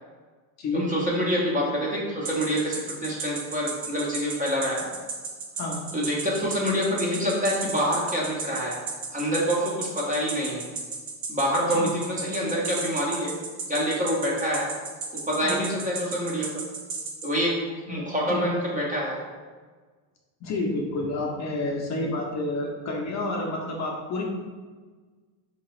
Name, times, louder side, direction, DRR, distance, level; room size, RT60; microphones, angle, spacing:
voice 1, 0.7-4.9 5.9-8.8 9.1-10.6 11.3-13.3 13.7-14.7 15.1-16.6 17.2-17.6 17.9-19.2, equal, 15° right, -4 dB, 0.5 m, -26 dB
sound 1, 2.2-17.3, right 4 dB, 75° right, 1.1 m, -33 dB
voice 2, 5.6-5.9 11.7-11.9 15.4-15.6 17.9-18.0 18.3-18.4 20.4-24.2, left 2 dB, 35° left, 0 dB, 0.5 m, -29 dB
3.8 x 2.8 x 3.0 m, 1.4 s
cardioid pair, 130°, 50 cm